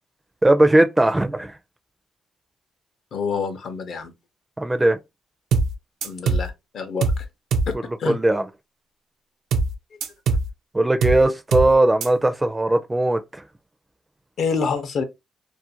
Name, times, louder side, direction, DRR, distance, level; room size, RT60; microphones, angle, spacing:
voice 1, 0.4-1.5 4.6-5.0 8.1-8.4 10.7-13.4, right 1 dB, 15° right, 0.4 m, -18 dB
voice 2, 3.1-4.1 6.0-7.3 7.7-8.2 14.4-15.0, left 5 dB, 60° left, 0.6 m, -27 dB
sound 1, 5.5-5.7 6.0-6.5 7.0-7.2 7.5-7.7 9.5-9.7 10.0-10.5 11.0-11.2 11.5-11.7 12.0-12.1, right 4 dB, 75° right, 0.4 m, -21 dB
2.5 x 2.1 x 2.8 m
cardioid pair, 90°, 0 cm